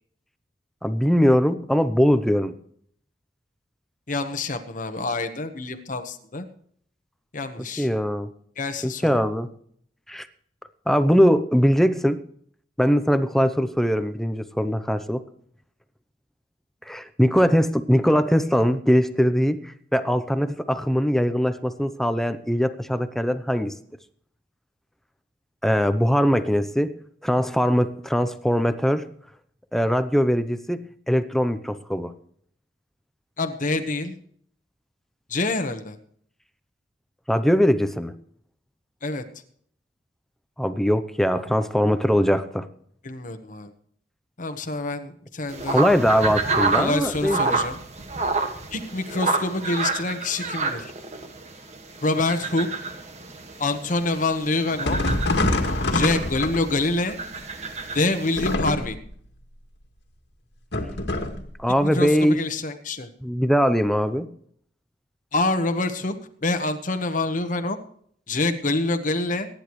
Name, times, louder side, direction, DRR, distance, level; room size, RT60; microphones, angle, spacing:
voice 1, 0.8-2.5 7.6-8.3 8.8-9.5 10.1-10.3 10.9-12.2 12.8-15.2 16.9-23.7 25.6-26.9 27.2-29.1 29.7-32.1 37.3-38.1 40.6-42.7 45.7-47.6 61.6-62.4 63.2-64.3, equal, ahead, 11 dB, 0.6 m, -21 dB
voice 2, 4.1-6.5 7.3-7.9 8.6-9.2 33.4-34.1 35.3-36.0 39.0-39.2 43.0-43.7 44.4-45.9 46.8-47.8 48.7-50.9 52.0-52.7 53.6-55.0 55.9-57.2 57.9-59.0 61.8-63.1 65.3-66.2 66.4-67.8 68.3-69.5, left 2 dB, 45° left, 8 dB, 1.2 m, -26 dB
sound 1, 45.5-58.5, right 3 dB, 40° right, 1.7 m, -30 dB
sound 2, 54.9-57.0 58.3-59.1 60.7-61.5, left 2 dB, 75° left, 2.0 m, -25 dB
23.5 x 10.5 x 3.1 m, 0.62 s
head